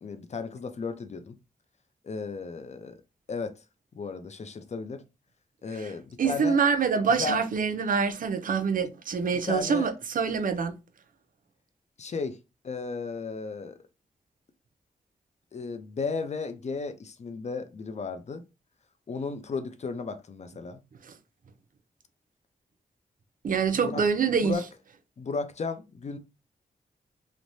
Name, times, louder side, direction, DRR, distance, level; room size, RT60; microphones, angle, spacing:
voice 1, 0.0-1.4 2.0-3.0 3.3-3.6 3.9-5.0 5.6-6.6 7.2-7.4 8.8-8.9 9.4-9.9 12.0-12.4 12.6-13.8 15.5-18.5 19.1-20.8 23.7-24.0 24.3-24.7 25.2-26.2, left 4 dB, 50° left, 0.5 m, -34 dB
voice 2, 6.2-10.7 23.4-24.6, right 6 dB, 65° right, 0.5 m, -25 dB
3.2 x 2.1 x 2.6 m
cardioid pair, 70°, 15 cm